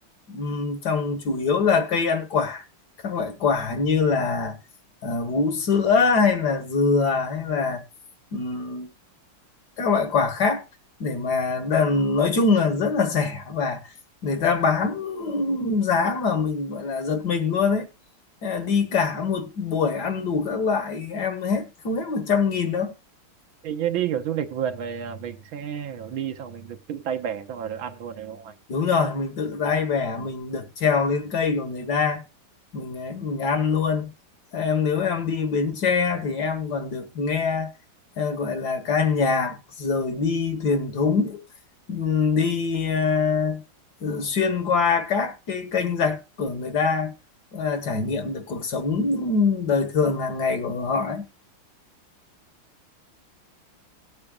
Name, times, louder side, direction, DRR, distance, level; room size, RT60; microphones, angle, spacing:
voice 1, 0.3-2.6 3.0-4.6 5.0-7.8 8.3-8.9 9.8-10.6 11.0-13.8 14.2-17.9 18.4-22.9 28.7-32.2 32.7-34.1 34.5-37.7 38.2-41.4 41.9-43.6 44.0-47.1 47.5-51.3, left 5 dB, 55° left, 1.8 m, -24 dB
voice 2, 23.6-28.6, right 9 dB, 75° right, 1.8 m, -30 dB
18.5 x 8.7 x 2.3 m
omnidirectional pair, 2.3 m